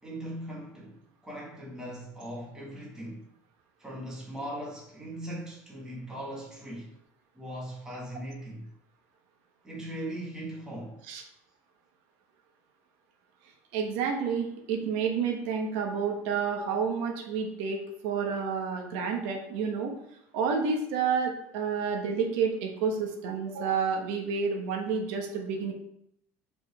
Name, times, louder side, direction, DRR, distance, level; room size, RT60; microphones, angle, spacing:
voice 1, 0.0-1.0 1.2-3.2 3.8-6.9 7.3-8.7 9.6-11.0, right 1 dB, 10° right, 1.6 m, -39 dB
voice 2, 13.7-19.9 20.3-25.7, right 6 dB, 85° right, 1.2 m, -30 dB
5.1 x 4.6 x 4.8 m
cardioid pair, 170°, 7 cm